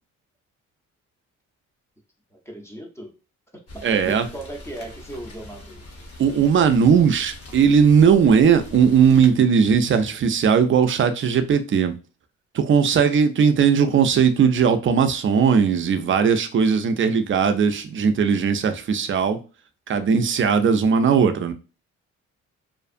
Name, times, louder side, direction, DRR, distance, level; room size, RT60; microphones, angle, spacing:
voice 1, 2.3-3.1 3.7-5.8, right 1 dB, 10° left, 0.6 m, -37 dB
Rain, 3.7-9.3, left 1 dB, 50° left, 0.8 m, -42 dB
voice 2, 3.8-4.3 6.2-11.9 12.5-19.4 19.9-21.5, right 6 dB, 40° right, 0.4 m, -18 dB
2.5 x 2.4 x 2.4 m
cardioid pair, 90°, 31 cm